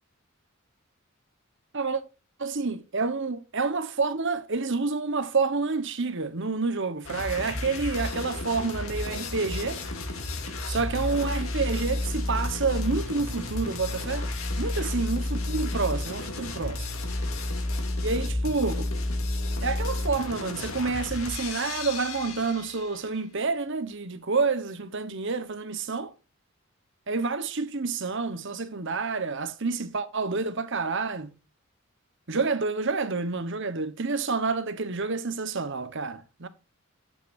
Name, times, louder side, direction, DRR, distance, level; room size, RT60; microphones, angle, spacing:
voice 1, 2.4-9.8 10.7-14.3 14.6-16.9 18.0-18.9 19.6-26.1 27.1-31.3 32.3-36.5, right 4 dB, 60° right, 1.2 m, -28 dB
sound 1, 7.0-23.0, left 2 dB, 85° left, 2.7 m, -31 dB
12.0 x 8.4 x 2.7 m
head